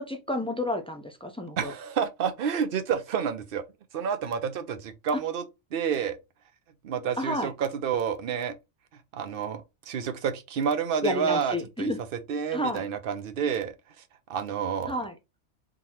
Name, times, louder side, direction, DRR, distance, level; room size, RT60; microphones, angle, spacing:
voice 1, 0.0-1.7 5.1-5.2 7.2-7.5 11.0-12.0 12.5-12.8 14.9-15.1, left 1 dB, 10° left, 0.3 m, -30 dB
voice 2, 1.6-3.6 3.9-5.4 5.7-6.2 6.8-8.5 9.1-11.9 12.3-13.7 14.3-15.0, right 7 dB, 55° right, 0.7 m, -29 dB
3.8 x 2.8 x 2.9 m
omnidirectional pair, 1.3 m